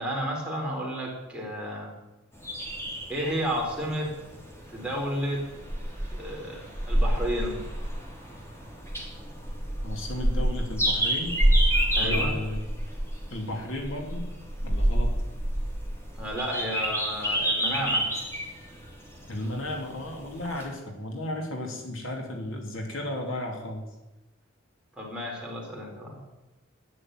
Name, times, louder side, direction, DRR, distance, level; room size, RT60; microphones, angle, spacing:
voice 1, 0.0-1.9 3.1-4.1 4.7-5.4 6.1-6.6 6.9-7.6 11.9-12.4 16.2-18.1 25.0-26.2, equal, 5° right, -3 dB, 4.3 m, -31 dB
sound 1, 2.4-20.7, right 1 dB, 15° left, 3.2 m, -28 dB
voice 2, 9.8-11.4 12.0-12.6 13.3-14.3 14.6-15.1 19.3-23.8, left 1 dB, 80° left, 2 dB, 3.0 m, -34 dB
11.0 x 10.0 x 9.1 m, 1.0 s
head